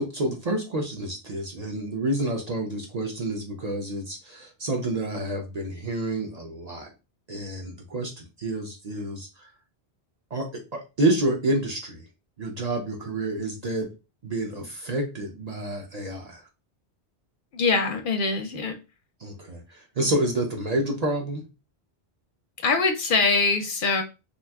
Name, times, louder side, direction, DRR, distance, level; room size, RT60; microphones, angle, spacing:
voice 1, 0.0-6.9 7.3-9.5 10.3-12.0 12.4-13.9 14.2-16.4 19.2-21.4, right 1 dB, 45° right, 2 dB, 0.6 m, -29 dB
voice 2, 17.5-18.7 22.6-24.0, left 4 dB, 60° left, 6 dB, 0.6 m, -23 dB
2.6 x 2.3 x 3.4 m, 0.28 s
omnidirectional pair, 1.1 m